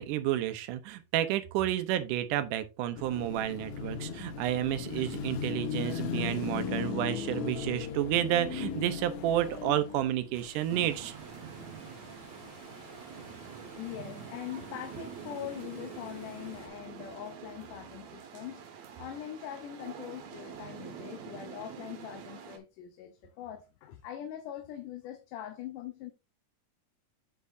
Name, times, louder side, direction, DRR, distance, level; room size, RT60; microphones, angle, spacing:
voice 1, 0.0-11.1, right 12 dB, 80° right, 2.3 m, -30 dB
Car passing by / Traffic noise roadway noise / Engine, 3.0-10.3, left 7 dB, 65° left, 2.4 m, -37 dB
Water, 10.3-16.7, left 2 dB, 35° left, 0.5 m, -52 dB
sound 1, 10.7-22.6, right 8 dB, 65° right, 2.3 m, -46 dB
voice 2, 13.8-18.7 19.0-26.1, left 11 dB, 90° left, 2.4 m, -42 dB
8.4 x 6.7 x 2.6 m
omnidirectional pair, 3.6 m